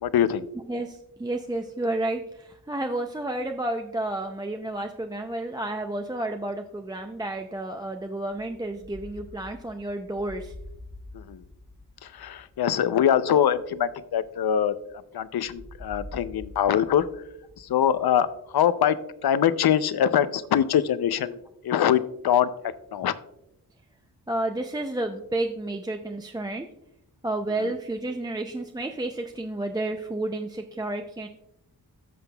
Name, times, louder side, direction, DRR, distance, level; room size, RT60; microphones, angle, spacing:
voice 1, 0.0-0.5 11.1-11.4 12.0-14.7 15.1-17.1 17.6-18.3 18.5-19.0 19.2-21.4 21.6-23.1 27.6-27.7, left 9 dB, 70° left, 15 dB, 0.5 m, -23 dB
voice 2, 0.7-10.5 24.3-26.7 27.2-31.3, right 2 dB, 10° right, 4 dB, 0.4 m, -31 dB
sound 1, 8.3-14.9 15.4-18.6, left 1 dB, 15° left, 1.1 m, -46 dB
13.5 x 5.9 x 2.2 m, 0.83 s
wide cardioid pair, 90°, 39 cm